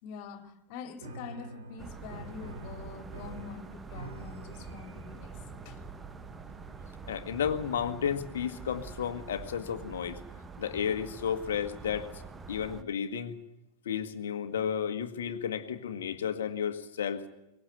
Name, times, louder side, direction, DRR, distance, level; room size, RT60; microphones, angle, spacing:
voice 1, 0.0-5.8, left 5 dB, 45° left, 5 dB, 2.9 m, -45 dB
Piano, 1.0-9.5, right 2 dB, 65° right, 4.5 m, -49 dB
sound 1, 1.8-12.8, right 5 dB, 15° right, 1.2 m, -46 dB
voice 2, 7.1-10.2 10.6-12.1 12.5-13.3 13.8-17.2, left 8 dB, 60° left, 9 dB, 1.7 m, -32 dB
24.0 x 20.5 x 8.1 m, 0.90 s
figure-of-eight pair, 90°, 0 cm